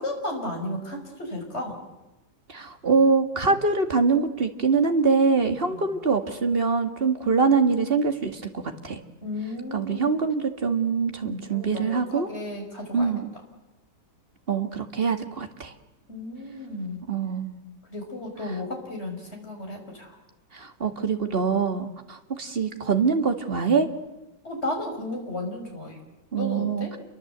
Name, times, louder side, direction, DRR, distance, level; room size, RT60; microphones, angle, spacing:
voice 1, 0.0-1.8 5.7-5.8 9.2-10.1 11.2-13.1 16.1-17.0 17.9-20.2 24.4-26.0 26.4-26.9, left 1 dB, 40° left, 2 dB, 5.9 m, -34 dB
voice 2, 2.5-8.4 8.8-9.0 9.7-12.3 12.9-13.4 14.5-15.7 17.1-17.6 20.5-23.9 26.3-27.0, right 5 dB, 35° right, 7 dB, 2.1 m, -24 dB
28.5 x 23.5 x 8.1 m, 1.0 s
omnidirectional pair, 1.8 m